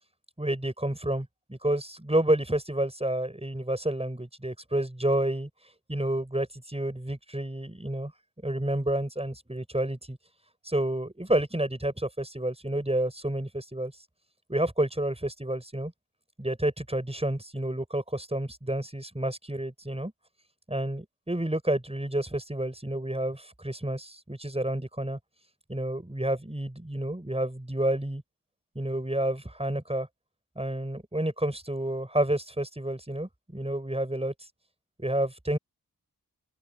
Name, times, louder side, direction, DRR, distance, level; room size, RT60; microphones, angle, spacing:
voice 1, 0.4-5.5 5.9-8.1 8.4-10.2 10.7-13.9 14.5-15.9 16.4-20.1 20.7-25.2 25.7-28.2 28.8-30.1 30.6-34.3 35.0-35.6, right 1 dB, 15° right, 7.2 m, -29 dB
open air
cardioid pair, 45°, 35 cm